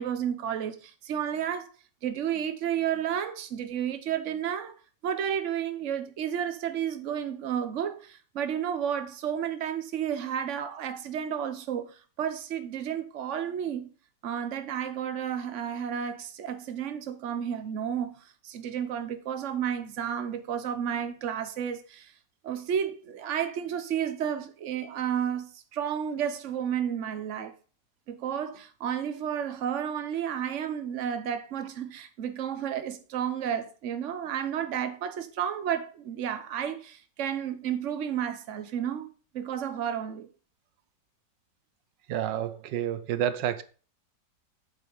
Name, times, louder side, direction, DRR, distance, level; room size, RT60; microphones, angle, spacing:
voice 1, 0.0-1.7 2.0-4.8 5.0-13.9 14.2-22.1 22.4-27.5 28.1-39.1 39.3-40.3, right 9 dB, 50° right, 1.2 m, -32 dB
voice 2, 42.1-43.6, right 10 dB, 90° right, 1.4 m, -29 dB
8.0 x 6.0 x 5.3 m
omnidirectional pair, 1.9 m